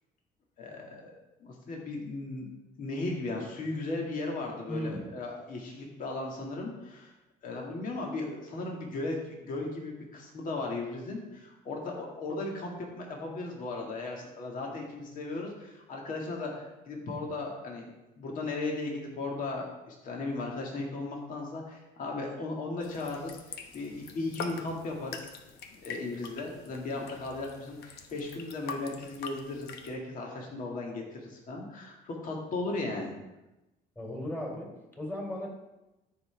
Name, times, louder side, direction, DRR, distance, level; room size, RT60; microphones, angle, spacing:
voice 1, 0.6-1.1 1.4-2.5 2.8-7.1 7.4-17.9 18.2-25.3 25.7-33.1, left 2 dB, 55° left, -1 dB, 2.0 m, -36 dB
voice 2, 4.7-5.1 33.9-35.5, left 1 dB, 10° left, -2 dB, 3.2 m, -36 dB
sound 1, 22.8-29.9, left 5 dB, 70° left, 1.0 m, -44 dB
13.5 x 5.7 x 3.5 m, 0.98 s
cardioid pair, 110°, 17 cm